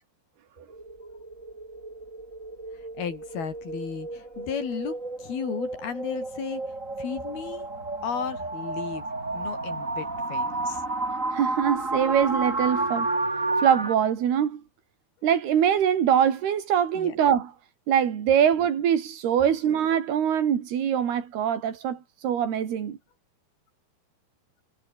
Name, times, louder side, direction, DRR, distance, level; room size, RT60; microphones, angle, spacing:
sound 1, 0.7-13.9, right 2 dB, 20° right, 4.5 m, -31 dB
voice 1, 2.7-6.6 7.0-7.7 8.0-10.8 17.0-17.2, left 7 dB, 75° left, 5.4 m, -34 dB
voice 2, 11.3-13.1 13.6-14.6 15.2-17.5 17.9-23.0, right 9 dB, 90° right, 4.8 m, -23 dB
omnidirectional pair, 4.4 m